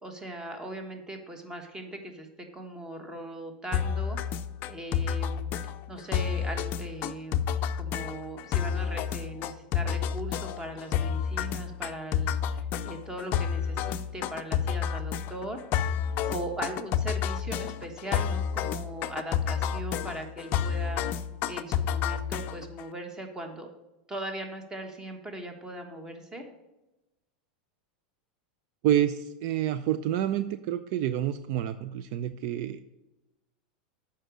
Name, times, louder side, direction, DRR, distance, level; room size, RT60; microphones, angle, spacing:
voice 1, 0.0-2.3 2.5-4.2 4.7-7.4 7.7-15.6 16.2-21.1 21.5-23.7 24.1-26.4, right 1 dB, 15° right, 5 dB, 1.4 m, -39 dB
sound 1, 3.7-22.8, left 8 dB, 40° left, 0.5 m, -30 dB
voice 2, 28.8-32.8, right 11 dB, 55° right, 12 dB, 0.4 m, -28 dB
7.8 x 5.2 x 6.4 m, 1.0 s
supercardioid pair, 130°, 5 cm